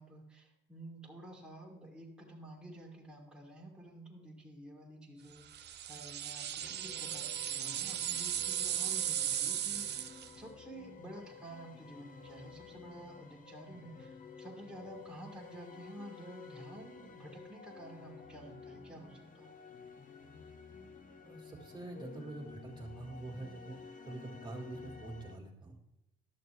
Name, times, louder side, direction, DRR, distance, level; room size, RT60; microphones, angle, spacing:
voice 1, 0.0-10.1 10.4-19.5, right 1 dB, 5° right, -3 dB, 1.7 m, -51 dB
sound 1, 5.5-10.4, right 10 dB, 60° right, 0.5 m, -36 dB
sound 2, 6.6-25.4, left 5 dB, 40° left, 0.9 m, -52 dB
voice 2, 21.2-25.8, right 2 dB, 25° right, 0 dB, 1.8 m, -45 dB
11.5 x 6.6 x 3.3 m, 0.91 s
cardioid pair, 90°, 20 cm